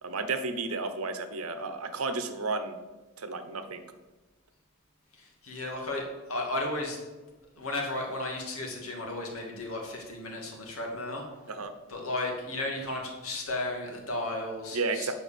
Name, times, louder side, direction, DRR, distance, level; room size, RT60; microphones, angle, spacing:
voice 1, 0.0-2.8 3.2-3.8 11.5-11.7 14.7-15.1, right 3 dB, 75° right, 9 dB, 0.9 m, -32 dB
voice 2, 5.1-7.0 7.6-11.2 11.9-15.1, left 2 dB, 70° left, 0 dB, 2.3 m, -34 dB
9.3 x 5.1 x 6.9 m, 1.2 s
head